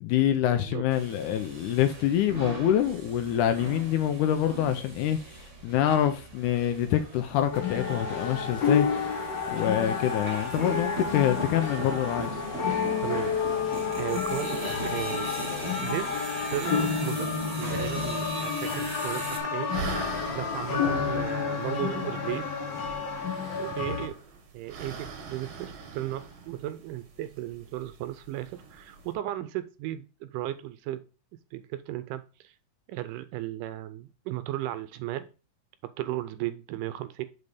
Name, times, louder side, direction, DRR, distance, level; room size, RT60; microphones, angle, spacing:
voice 1, 0.0-8.9 9.5-12.4, left 11 dB, 80° left, 1.9 m, -26 dB
voice 2, 0.5-0.8 13.0-13.4 13.9-15.3 15.8-16.3 16.5-19.7 20.4-22.7 23.6-24.2 24.5-31.0 31.5-32.5 32.9-35.3 35.8-37.3, right 14 dB, 80° right, 2.0 m, -35 dB
sound 1, 0.9-19.4, right 3 dB, 35° right, 1.1 m, -40 dB
sound 2, 7.5-24.1, left 6 dB, 55° left, 1.3 m, -30 dB
sound 3, 18.5-29.1, right 4 dB, 55° right, 1.5 m, -43 dB
6.8 x 4.2 x 4.9 m
omnidirectional pair, 4.0 m